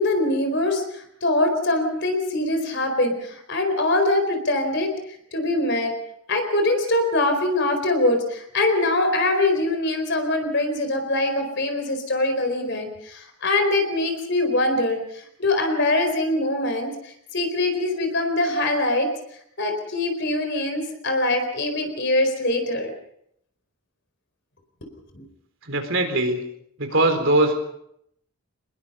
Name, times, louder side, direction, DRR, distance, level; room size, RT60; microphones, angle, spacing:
voice 1, 0.0-4.9 5.3-5.9 6.3-19.1 19.6-22.9 25.1-25.2, left 2 dB, 50° left, 6 dB, 4.4 m, -23 dB
voice 2, 25.7-26.4 26.8-27.6, right 2 dB, 55° right, 6 dB, 3.7 m, -21 dB
24.0 x 21.0 x 5.6 m, 0.73 s
head